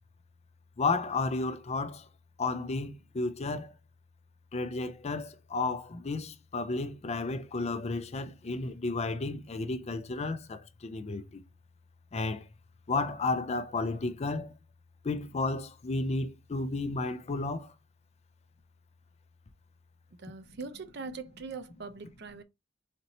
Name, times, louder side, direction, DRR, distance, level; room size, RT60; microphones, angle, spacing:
voice 1, 0.8-2.1 2.4-3.7 4.5-11.4 12.1-12.4 12.9-14.5 15.0-17.7, left 3 dB, 35° left, 0.5 m, -32 dB
voice 2, 20.2-22.4, right 4 dB, 60° right, 0.6 m, -42 dB
4.3 x 2.7 x 4.1 m
head